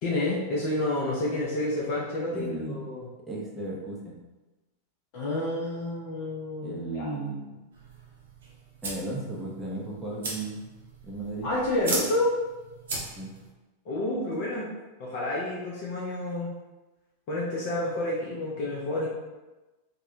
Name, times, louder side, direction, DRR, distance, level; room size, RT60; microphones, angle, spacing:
voice 1, 0.0-3.1 5.1-7.1 11.4-12.3 13.9-14.7 15.0-16.5 17.3-19.1, left 1 dB, 45° left, -5 dB, 0.4 m, -29 dB
voice 2, 2.3-2.8 3.3-4.2 6.6-7.6 8.8-10.7 11.0-11.5 13.2-13.3, right 2 dB, 10° right, -4 dB, 0.5 m, -35 dB
sound 1, 7.7-13.5, right 2 dB, 65° right, 0.6 m, -37 dB
2.6 x 2.1 x 2.5 m, 1.1 s
figure-of-eight pair, 90°, 0 cm